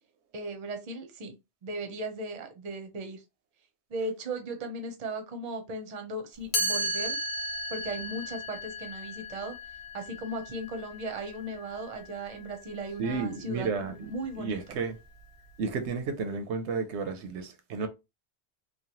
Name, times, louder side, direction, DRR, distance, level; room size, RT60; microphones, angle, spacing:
voice 1, 0.3-1.4 1.6-3.2 3.9-7.2 7.7-9.5 9.9-14.8, right 2 dB, 40° right, 0.6 m, -37 dB
Chime, 6.5-12.4, equal, 70° left, 1.0 m, -35 dB
voice 2, 13.0-15.0 15.6-17.9, right 4 dB, 90° right, 0.9 m, -32 dB
3.1 x 2.2 x 2.7 m
omnidirectional pair, 1.1 m